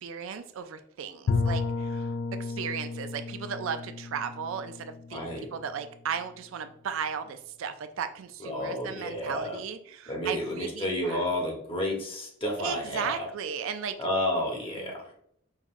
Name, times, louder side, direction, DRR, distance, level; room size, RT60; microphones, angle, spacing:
voice 1, 0.0-2.1 2.6-11.2 12.6-14.0 14.9-15.0, right 7 dB, 70° right, 9 dB, 0.3 m, -35 dB
Bowed string instrument, 1.3-6.1, left 4 dB, 55° left, 0.3 m, -33 dB
voice 2, 5.1-5.5 8.4-9.6 10.1-13.3 14.0-15.1, left 1 dB, 25° left, 0 dB, 0.9 m, -31 dB
5.5 x 2.4 x 2.5 m, 0.67 s
head